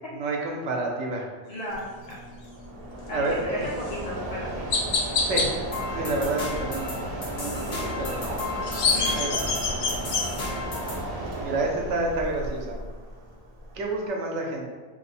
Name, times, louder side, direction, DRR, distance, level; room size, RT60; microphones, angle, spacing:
voice 1, 0.1-1.3 3.1-3.7 5.3-5.5 5.9-7.0 7.3-8.4 9.1-9.4 11.4-12.8 13.7-14.7, right 2 dB, 80° right, 0 dB, 0.9 m, -29 dB
voice 2, 1.5-2.2 3.1-4.6 8.9-9.1, left 1 dB, 45° left, -6 dB, 0.9 m, -35 dB
Mechanisms, 1.7-14.1, right 1 dB, 50° right, 0.5 m, -34 dB
Chirp tweet, 3.8-4.0 4.7-5.5 8.4-10.2, left 4 dB, 85° left, 0.9 m, -25 dB
sound 1, 5.7-11.0, left 3 dB, 70° left, 1.2 m, -35 dB
3.0 x 2.0 x 4.1 m, 1.4 s
omnidirectional pair, 1.2 m